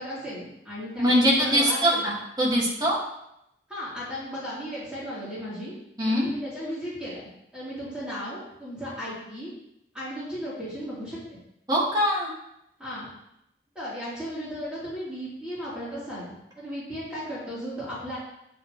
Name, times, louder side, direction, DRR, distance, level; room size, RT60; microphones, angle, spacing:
voice 1, 0.0-2.1 3.7-5.7 6.0-7.3 7.5-9.5 9.9-11.4 12.8-13.1 13.8-18.2, equal, 5° right, -11 dB, 3.7 m, -35 dB
voice 2, 1.0-3.0 6.0-6.2 11.7-12.3, equal, 20° right, -4 dB, 2.0 m, -22 dB
10.0 x 7.4 x 3.2 m, 0.81 s
head